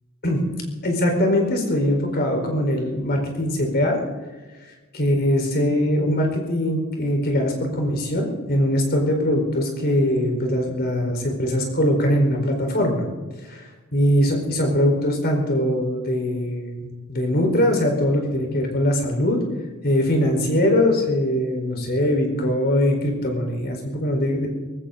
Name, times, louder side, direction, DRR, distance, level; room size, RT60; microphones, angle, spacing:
voice 1, 0.8-4.0 4.9-13.0 13.5-13.7 13.9-19.4 19.8-24.5, left 1 dB, 50° left, 2 dB, 4.5 m, -21 dB
19.0 x 16.5 x 4.0 m, 1.2 s
head